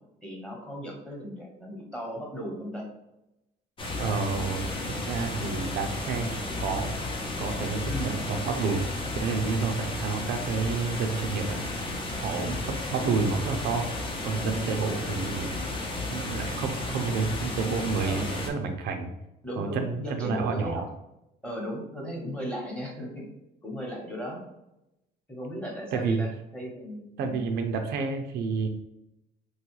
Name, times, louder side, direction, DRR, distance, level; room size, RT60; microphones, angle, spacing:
voice 1, 0.2-2.9 7.9-8.1 18.0-18.3 19.4-20.8 21.4-23.3 23.6-24.4 25.3-27.4, equal, 5° left, -2 dB, 1.0 m, -36 dB
sound 1, 3.8-18.5, left 2 dB, 30° left, 0.7 m, -33 dB
voice 2, 4.0-6.9 7.4-8.9 9.2-11.6 12.2-13.9 14.2-15.6 16.1-19.1 19.6-20.9 25.9-26.2 27.2-28.7, right 4 dB, 75° right, 4 dB, 0.5 m, -30 dB
3.1 x 2.3 x 3.0 m, 0.88 s
cardioid pair, 110°, 17 cm